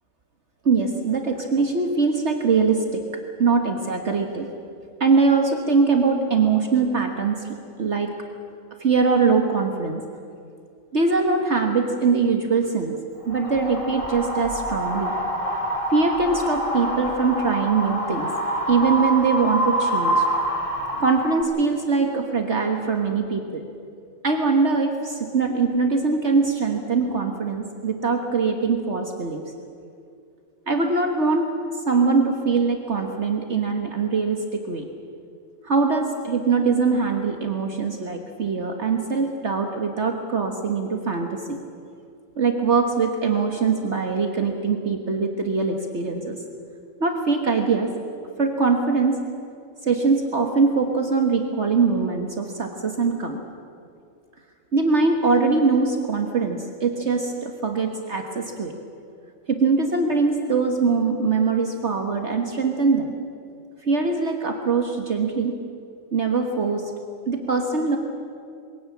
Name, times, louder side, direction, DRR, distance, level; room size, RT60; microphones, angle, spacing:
voice 1, 0.7-3.0 3.4-4.5 5.0-7.4 7.8-8.1 8.8-10.0 10.9-13.0 13.3-15.1 15.9-18.3 18.7-20.3 21.0-23.6 24.2-29.4 30.7-31.5 31.9-34.8 35.6-41.6 42.4-46.4 47.0-47.9 48.4-49.2 49.8-53.5 54.7-58.7 59.5-63.1 63.9-65.6 66.1-66.8 67.3-68.0, right 4 dB, 55° right, 4 dB, 1.7 m, -22 dB
Wind, 13.3-21.4, right 1 dB, 25° left, 2.1 m, -26 dB
22.0 x 17.0 x 8.5 m, 2.4 s
omnidirectional pair, 1.5 m